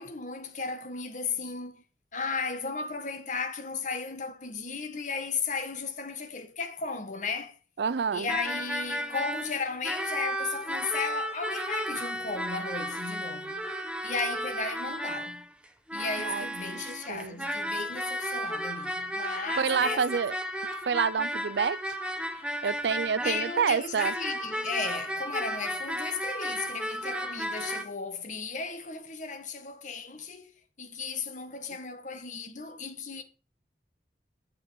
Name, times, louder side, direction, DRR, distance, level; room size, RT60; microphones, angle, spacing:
voice 1, 0.0-1.8 2.1-7.6 8.1-13.7 14.0-15.4 15.9-20.0 23.2-30.5 30.8-33.2, left 4 dB, 45° left, 1.5 m, -35 dB
voice 2, 7.8-8.3 16.2-16.5 16.7-17.5 19.6-20.4 20.9-22.0 22.3-24.1, right 6 dB, 75° right, 0.4 m, -28 dB
sound 1, 8.3-27.8, equal, 5° right, 1.1 m, -34 dB
8.9 x 7.5 x 4.7 m
head